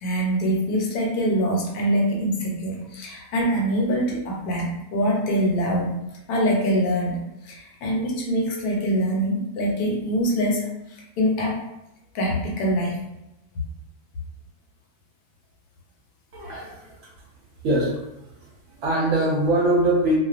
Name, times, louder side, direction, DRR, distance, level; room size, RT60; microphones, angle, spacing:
voice 1, 0.0-5.9 6.3-7.2 7.4-10.6 11.2-11.6 12.1-13.0, equal, 75° left, -2 dB, 1.1 m, -24 dB
voice 2, 16.3-16.9 17.6-18.2 18.8-20.2, right 1 dB, 65° right, -4 dB, 0.8 m, -22 dB
2.4 x 2.3 x 2.4 m, 0.90 s
omnidirectional pair, 1.7 m